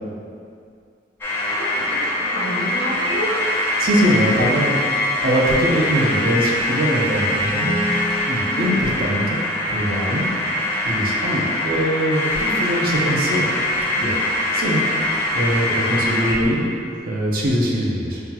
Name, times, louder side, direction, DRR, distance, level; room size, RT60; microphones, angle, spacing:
sound 1, 1.2-16.4, left 1 dB, 15° left, 0.5 m, -23 dB
voice 1, 1.4-3.5 8.5-8.8, right 1 dB, 65° left, -3 dB, 0.6 m, -28 dB
voice 2, 3.8-4.7 5.2-7.6 8.2-9.4 9.7-10.3 10.8-13.5 13.9-14.2 14.5-14.8 15.3-16.7 17.1-18.2, equal, 55° right, -3 dB, 0.6 m, -22 dB
sound 2, 7.6-9.7, equal, 85° right, 1.2 m, -30 dB
5.6 x 2.2 x 2.9 m, 2.3 s
head